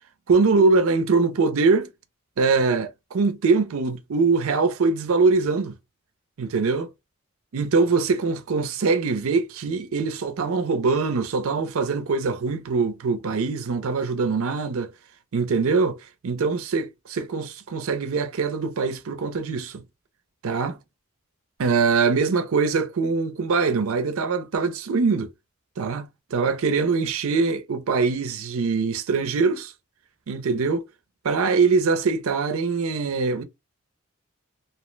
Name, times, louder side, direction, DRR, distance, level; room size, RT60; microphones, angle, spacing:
voice 1, 0.3-1.9 2.4-5.8 6.4-6.9 7.5-14.9 15.3-16.0 16.2-19.8 20.4-20.8 21.6-25.3 25.8-29.7 30.3-30.9 31.2-33.4, right 4 dB, 75° right, 0.5 m, -23 dB
2.8 x 2.0 x 3.1 m
head